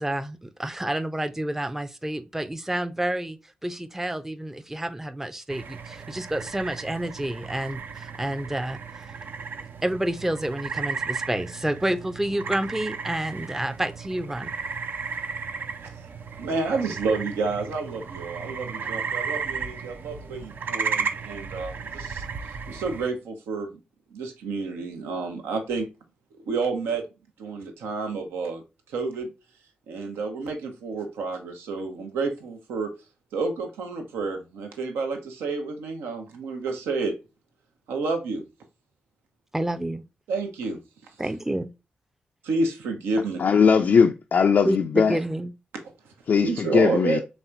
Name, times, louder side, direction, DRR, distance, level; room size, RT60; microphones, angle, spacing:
voice 1, 0.0-9.1 9.8-14.5 39.5-40.0 41.2-41.7 44.6-45.5, right 1 dB, 10° right, 0.5 m, -29 dB
sound 1, 5.5-23.1, right 5 dB, 65° right, 0.4 m, -34 dB
voice 2, 16.4-23.8 24.1-25.9 26.4-27.0 27.4-29.3 29.9-32.9 33.3-37.1 37.9-38.5 40.3-41.1 42.4-43.4 46.0-46.1 46.4-47.2, right 3 dB, 90° right, 0.8 m, -30 dB
voice 3, 43.4-45.2 46.3-47.2, left 6 dB, 60° left, 0.3 m, -19 dB
4.2 x 3.4 x 2.4 m
supercardioid pair, 45°, 4 cm